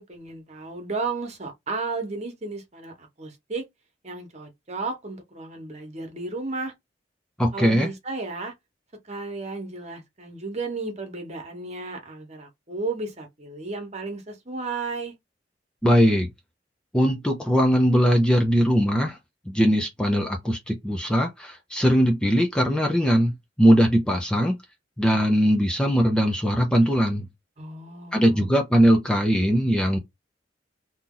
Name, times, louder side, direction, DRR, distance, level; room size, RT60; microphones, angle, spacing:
voice 1, 0.0-3.6 4.0-6.7 7.5-8.5 9.1-15.1 27.6-28.5, right 3 dB, 40° right, 1.1 m, -33 dB
voice 2, 7.4-7.9 15.8-16.3 16.9-19.2 19.5-23.3 23.6-24.6 25.0-27.3 28.1-30.0, equal, 5° left, 0.6 m, -20 dB
2.9 x 2.7 x 3.7 m
head